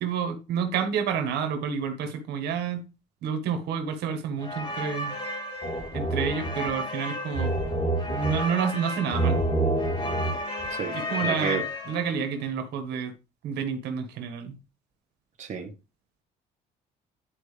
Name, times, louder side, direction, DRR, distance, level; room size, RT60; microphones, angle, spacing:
voice 1, 0.0-2.8 3.2-5.1 5.9-7.5 8.1-9.4 10.9-11.6 11.9-13.1 13.4-14.6, right 7 dB, 80° right, 1.7 m, -29 dB
sound 1, 4.4-12.3, right 1 dB, 30° left, 3.7 m, -29 dB
voice 2, 10.7-11.6 15.4-15.7, right 6 dB, 45° right, 1.6 m, -31 dB
11.0 x 4.7 x 3.4 m
cardioid pair, 110°, 17 cm